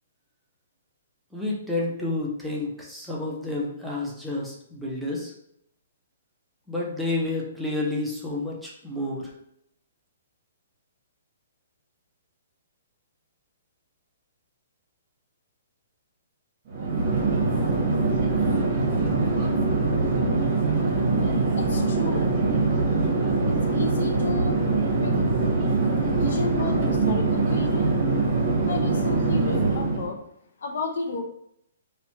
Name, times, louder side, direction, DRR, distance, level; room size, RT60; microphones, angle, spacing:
voice 1, 1.3-5.3 6.7-9.3, left 2 dB, ahead, -4 dB, 0.4 m, -30 dB
Chatter / Fixed-wing aircraft airplane, 16.7-30.1, right 3 dB, 35° right, 0.7 m, -23 dB
voice 2, 21.5-22.3 23.5-24.6 25.0-25.2 26.2-27.9 28.7-30.2 30.6-31.2, left 3 dB, 65° left, 4 dB, 0.4 m, -32 dB
2.9 x 2.1 x 2.7 m, 0.74 s
hypercardioid pair, 165°, 0 cm